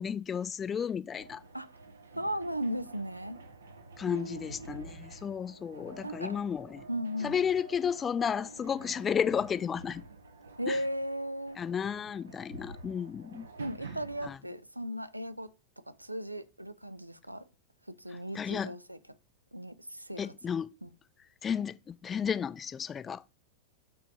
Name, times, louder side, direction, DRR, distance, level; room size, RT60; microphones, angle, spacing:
voice 1, 0.0-1.4 4.0-6.8 7.2-10.0 10.7-10.8 11.6-13.5 14.2-14.4 18.3-18.7 20.2-20.7 21.4-23.2, left 7 dB, 20° left, 0.4 m, -32 dB
sound 1, 1.1-14.3, right 3 dB, 70° right, 0.8 m, -49 dB
voice 2, 2.2-3.4 4.1-4.7 6.0-6.4 6.9-7.5 10.6-11.6 13.6-15.5 16.0-17.4 18.0-19.0 19.5-20.3 20.8-20.9, equal, 85° right, 0.5 m, -36 dB
5.8 x 3.9 x 5.1 m
figure-of-eight pair, 90°, 0 cm